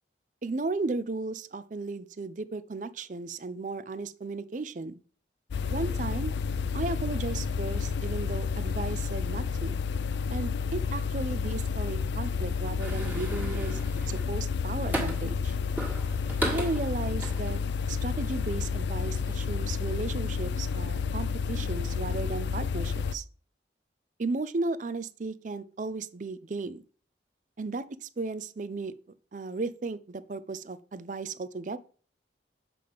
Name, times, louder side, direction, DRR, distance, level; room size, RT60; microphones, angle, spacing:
voice 1, 0.4-5.0 5.7-6.3 6.7-9.8 10.3-13.8 14.1-15.5 16.4-17.6 17.9-23.2 24.2-26.8 27.6-29.0 29.3-31.8, right 3 dB, 45° right, 16 dB, 0.4 m, -35 dB
sound 1, 5.5-23.2, left 5 dB, 70° left, 0.4 m, -30 dB
sound 2, 12.8-15.4 15.8-17.9 18.3-18.5, right 1 dB, 10° right, 1.6 m, -36 dB
7.5 x 5.0 x 3.5 m, 0.42 s
head